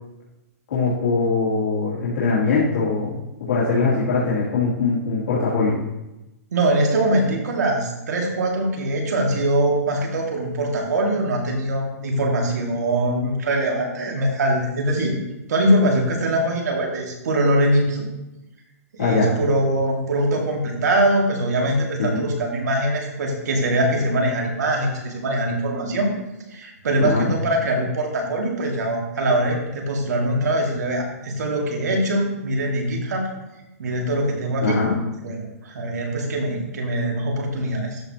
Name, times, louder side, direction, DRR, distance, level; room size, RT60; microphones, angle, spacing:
voice 1, 0.7-5.8 19.0-19.3 22.0-22.3 27.0-27.3 34.6-35.0, left 4 dB, 70° left, -10 dB, 2.7 m, -22 dB
voice 2, 6.5-15.2 15.5-18.1 19.0-26.1 26.5-33.3 33.8-34.8 35.2-38.0, right 1 dB, 80° right, 0 dB, 2.2 m, -22 dB
13.0 x 4.8 x 2.9 m, 0.95 s
hypercardioid pair, 165°, 9 cm